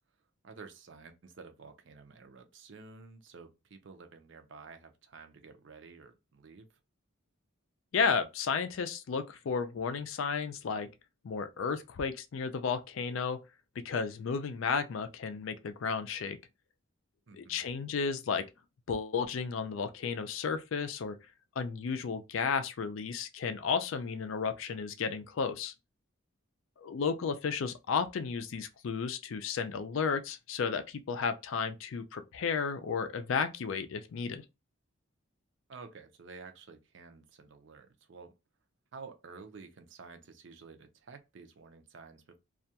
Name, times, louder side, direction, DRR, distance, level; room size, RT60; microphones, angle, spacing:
voice 1, 0.4-6.7 17.3-17.6 35.7-38.3 38.9-42.4, right 4 dB, 55° right, 0.5 m, -51 dB
voice 2, 7.9-10.9 11.2-13.4 13.8-16.4 17.3-18.5 18.9-21.2 21.6-25.7 26.8-34.4, left 5 dB, 70° left, 0.4 m, -33 dB
2.3 x 2.2 x 2.7 m
head